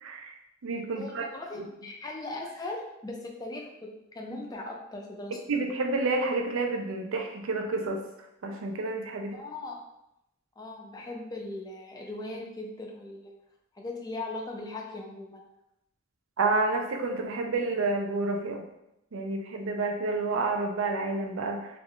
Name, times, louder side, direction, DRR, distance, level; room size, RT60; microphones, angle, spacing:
voice 1, 0.0-0.3 0.6-1.2 1.6-1.7 5.5-8.0 8.4-9.4 16.4-18.6 19.1-21.7, right 3 dB, 80° right, 4 dB, 0.4 m, -29 dB
voice 2, 1.0-5.4 9.3-9.8 10.6-13.3 13.7-15.4, left 2 dB, 20° left, 0 dB, 0.3 m, -39 dB
2.4 x 2.2 x 3.5 m, 0.86 s
head